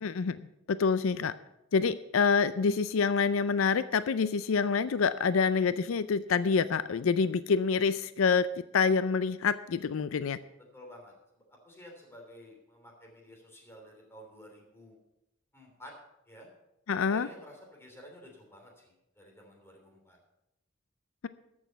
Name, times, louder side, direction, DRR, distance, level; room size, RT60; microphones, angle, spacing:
voice 1, 0.0-1.3 1.7-8.5 8.7-10.4 16.9-17.3, left 5 dB, 85° left, 15 dB, 0.4 m, -27 dB
voice 2, 10.7-14.9 15.5-15.9 16.3-16.5 17.1-20.2, equal, 10° left, 0 dB, 3.2 m, -52 dB
13.5 x 6.3 x 6.8 m, 0.88 s
head